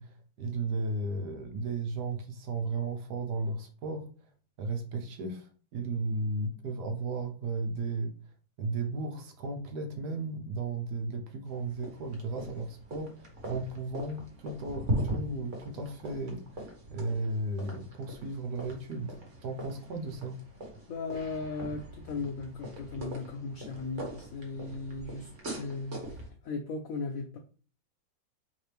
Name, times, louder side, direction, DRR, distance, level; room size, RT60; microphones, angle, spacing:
voice 1, 0.0-4.1 4.6-8.1 8.6-20.4, right 3 dB, 65° right, 1.2 m, -35 dB
sound 1, 11.5-26.3, right 1 dB, 45° right, 1.5 m, -40 dB
voice 2, 20.9-27.4, left 4 dB, 75° left, 0.7 m, -37 dB
4.5 x 3.3 x 3.3 m
omnidirectional pair, 2.0 m